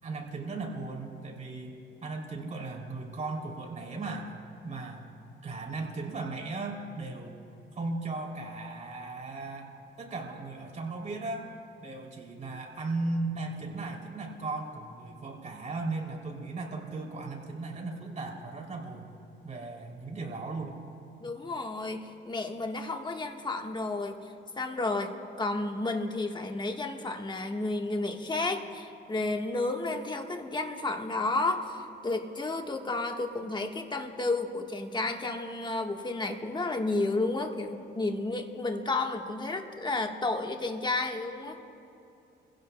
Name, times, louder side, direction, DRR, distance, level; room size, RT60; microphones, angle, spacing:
voice 1, 0.0-4.3 4.6-5.0 5.4-7.3 7.7-9.7 10.0-11.5 11.8-19.1 19.4-20.8, right 3 dB, 35° right, 0 dB, 3.0 m, -36 dB
voice 2, 21.2-41.6, left 2 dB, 25° left, 3 dB, 1.4 m, -32 dB
26.5 x 16.0 x 2.2 m, 2.7 s
cardioid pair, 90°, 20 cm